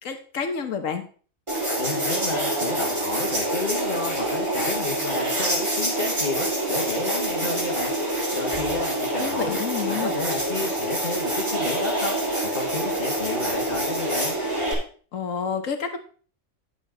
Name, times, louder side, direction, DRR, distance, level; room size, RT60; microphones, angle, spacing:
voice 1, 0.0-1.0 9.2-10.1 15.1-16.0, left 6 dB, 70° left, 7 dB, 1.6 m, -29 dB
sound 1, 1.5-14.7, right 1 dB, 20° right, 2.7 m, -26 dB
voice 2, 1.8-7.9 8.3-9.6 9.8-12.2 12.5-14.3, left 2 dB, 35° left, -4 dB, 1.6 m, -31 dB
9.2 x 7.3 x 3.8 m, 0.41 s
omnidirectional pair, 1.4 m